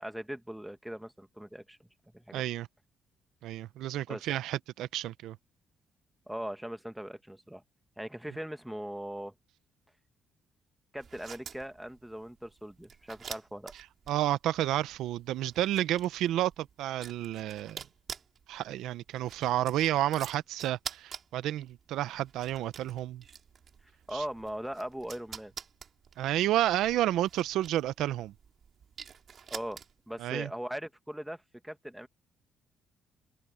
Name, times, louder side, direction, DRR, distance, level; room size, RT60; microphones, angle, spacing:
voice 1, 0.0-1.8 2.1-2.4 4.1-4.3 6.3-7.6 8.0-9.3 10.9-13.7 24.1-25.5 29.5-29.8 30.1-32.1, equal, 5° right, 1.5 m, -40 dB
voice 2, 2.3-2.7 3.4-5.4 14.1-17.8 18.5-23.2 24.1-24.2 26.2-28.3 30.2-30.5, right 13 dB, 85° right, 0.6 m, -30 dB
sound 1, 11.0-30.2, right 7 dB, 55° right, 3.2 m, -48 dB
open air
cardioid pair, 90°, 0 cm